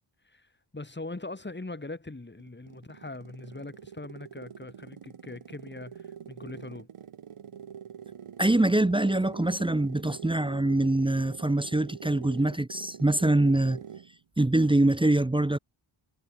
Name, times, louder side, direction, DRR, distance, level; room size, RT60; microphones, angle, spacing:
voice 1, 0.7-6.9, left 2 dB, 20° left, 4.0 m, -41 dB
sound 1, 2.4-14.2, right 8 dB, 85° right, 2.4 m, -45 dB
voice 2, 8.4-13.8 14.4-15.6, right 2 dB, 10° right, 0.7 m, -24 dB
cardioid pair, 70°, 50 cm